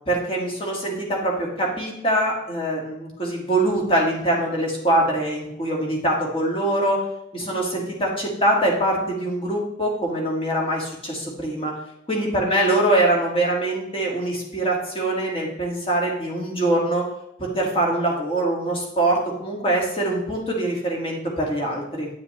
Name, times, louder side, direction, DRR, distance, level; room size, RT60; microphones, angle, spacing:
voice 1, 0.1-7.0 7.3-11.7 12.1-17.1 17.4-22.1, right 1 dB, 30° left, -2 dB, 2.2 m, -23 dB
10.0 x 7.0 x 3.3 m, 0.83 s
head